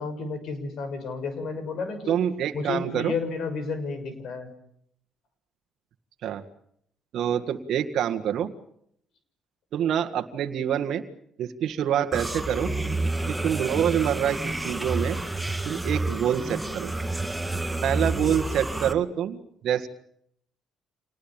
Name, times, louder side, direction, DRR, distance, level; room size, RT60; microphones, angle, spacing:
voice 1, 0.0-2.2 2.5-4.5, left 4 dB, 65° left, 10 dB, 6.2 m, -31 dB
voice 2, 2.1-3.1 6.2-6.4 7.1-8.5 9.7-11.0 11.4-12.7 13.3-15.2 15.6-16.9 17.8-19.9, right 9 dB, 70° right, 5 dB, 1.8 m, -26 dB
sound 1, 12.1-18.9, right 2 dB, 5° right, 2.0 m, -29 dB
27.5 x 19.0 x 8.9 m, 0.72 s
supercardioid pair, 80°, 0 cm